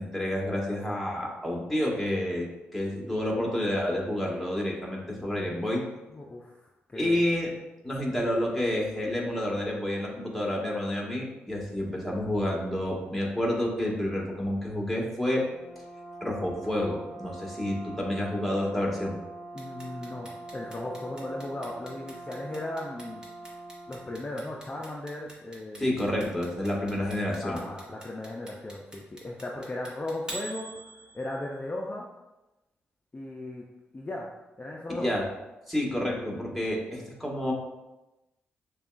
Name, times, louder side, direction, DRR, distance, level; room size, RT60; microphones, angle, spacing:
voice 1, 0.0-5.8 6.9-7.5 7.8-15.4 16.2-19.2 25.8-27.6 35.0-35.2 35.7-37.5, left 1 dB, ahead, -2 dB, 1.5 m, -29 dB
voice 2, 6.1-7.2 19.5-23.2 23.9-25.9 27.4-32.1 33.1-33.6 33.9-35.1, left 1 dB, 30° left, -1 dB, 0.5 m, -37 dB
Brass instrument, 15.5-24.2, right 2 dB, 70° right, 0.7 m, -43 dB
Clock, 19.6-31.6, right 1 dB, 15° right, 1.3 m, -44 dB
6.6 x 2.3 x 2.5 m, 1.0 s
supercardioid pair, 45°, 5 cm